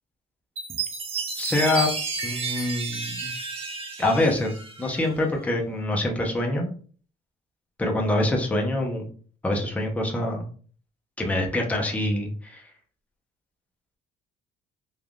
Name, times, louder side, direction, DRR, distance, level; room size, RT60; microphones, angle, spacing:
Chime, 0.6-5.2, right 4 dB, 35° right, 0.8 m, -32 dB
voice 1, 1.4-1.9 2.2-3.3 4.0-4.5 4.8-6.7 7.8-9.1 9.4-10.5 11.2-12.6, left 1 dB, 10° left, 0 dB, 0.6 m, -25 dB
3.4 x 2.3 x 2.2 m, 0.44 s
cardioid pair, 110°, 17 cm